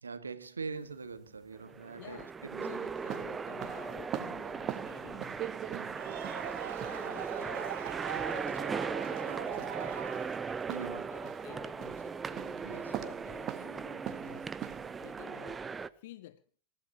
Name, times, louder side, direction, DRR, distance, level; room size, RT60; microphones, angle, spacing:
voice 1, 0.0-2.8 5.7-6.1 10.7-11.1 12.6-12.9, right 4 dB, 85° right, 1.7 m, -43 dB
sound 1, 0.7-15.1, right 12 dB, 40° right, 1.6 m, -44 dB
sound 2, 1.6-15.9, right 5 dB, 20° right, 0.9 m, -38 dB
voice 2, 2.0-2.3 2.6-5.3 6.6-7.8 8.1-10.1 11.1-14.5 15.0-15.7 15.9-16.4, left 14 dB, 65° left, 0.7 m, -51 dB
sound 3, 5.8-10.8, right 12 dB, 60° right, 1.5 m, -42 dB
27.0 x 15.0 x 3.0 m
figure-of-eight pair, 85°, 0 cm